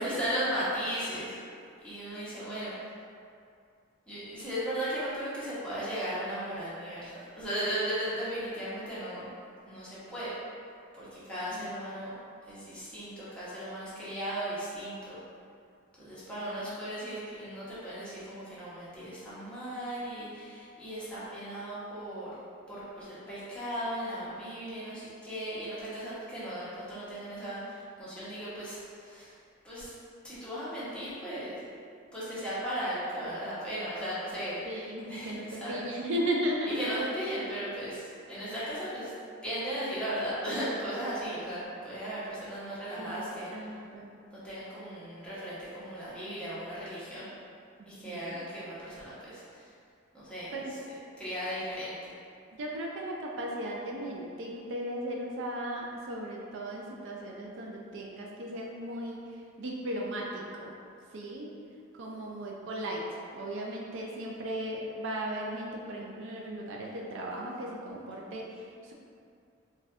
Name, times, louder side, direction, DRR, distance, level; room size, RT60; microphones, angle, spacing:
voice 1, 0.0-1.4 1.8-2.7 4.1-9.3 9.6-10.3 10.9-12.2 12.4-15.2 16.0-22.3 22.7-29.4 29.6-29.9 30.2-31.6 32.1-34.8 35.1-35.8 36.7-39.1 39.4-43.5 44.3-47.3 47.9-49.7 50.1-50.8 51.2-52.0, equal, 5° left, -11 dB, 0.8 m, -36 dB
voice 2, 34.6-37.0 43.0-43.2 43.5-44.1 47.8-48.3 50.5-50.7 52.5-60.7 61.1-61.6 61.9-68.9, right 1 dB, 65° right, -2 dB, 0.4 m, -36 dB
4.1 x 2.3 x 2.4 m, 2.4 s
head